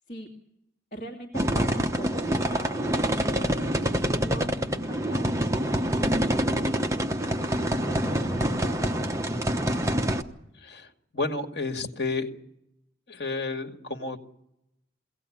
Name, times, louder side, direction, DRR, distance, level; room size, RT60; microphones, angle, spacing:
voice 1, 0.9-9.8, right 2 dB, 45° left, 1 dB, 2.4 m, -42 dB
sound 1, 1.3-10.2, right 1 dB, 15° right, 1.0 m, -26 dB
voice 2, 10.6-12.3 13.1-14.2, left 3 dB, 60° left, 4 dB, 2.2 m, -31 dB
23.0 x 17.5 x 8.7 m, 0.84 s
head